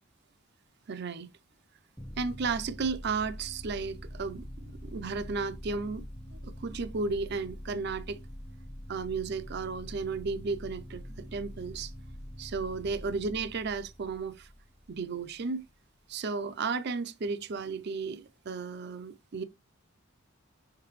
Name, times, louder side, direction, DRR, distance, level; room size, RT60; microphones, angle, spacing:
voice 1, 0.9-1.3 2.2-4.4 4.8-6.0 6.4-8.2 8.9-11.9 12.4-14.5 14.9-15.6 16.1-19.4, right 4 dB, 55° right, 0.5 m, -34 dB
sound 1, 2.0-15.4, equal, 5° left, 0.8 m, -45 dB
6.2 x 5.8 x 3.1 m
head